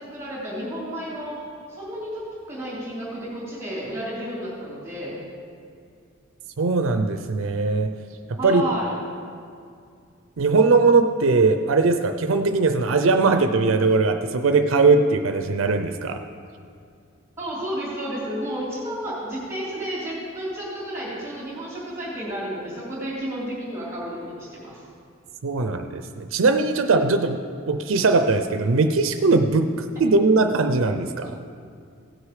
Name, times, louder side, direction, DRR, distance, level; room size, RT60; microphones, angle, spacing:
voice 1, 0.0-1.4 1.7-5.2 8.4-8.9 17.4-24.8, right 1 dB, 15° right, -9 dB, 2.7 m, -32 dB
voice 2, 6.6-7.9 8.3-8.7 10.4-16.2 25.4-27.4 27.7-31.4, right 3 dB, 75° right, 7 dB, 0.5 m, -20 dB
16.5 x 6.4 x 4.9 m, 2.3 s
head